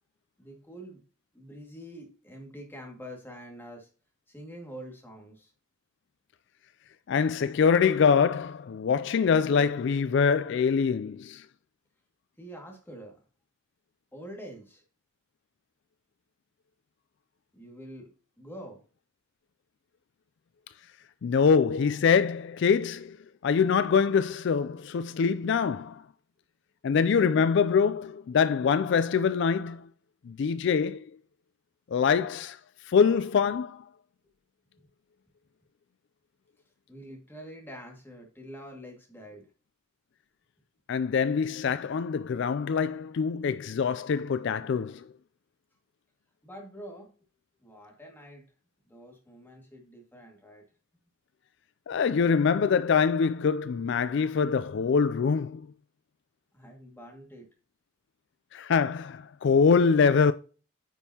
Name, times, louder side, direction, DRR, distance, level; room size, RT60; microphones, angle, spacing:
voice 1, 0.4-1.0 1.3-3.9 4.3-5.5 12.4-13.2 14.1-14.8 17.5-18.1 18.4-18.8 36.9-39.5 46.4-47.1 47.6-48.5 48.9-50.7 56.5-57.5, equal, 10° left, 2.0 m, -45 dB
voice 2, 7.1-11.5 21.2-23.2 23.4-26.0 26.8-29.9 30.3-31.1 31.9-32.6 32.9-33.8 40.9-45.1 51.9-55.7 58.5-60.3, left 6 dB, 55° left, 0.3 m, -24 dB
9.2 x 5.4 x 2.8 m
head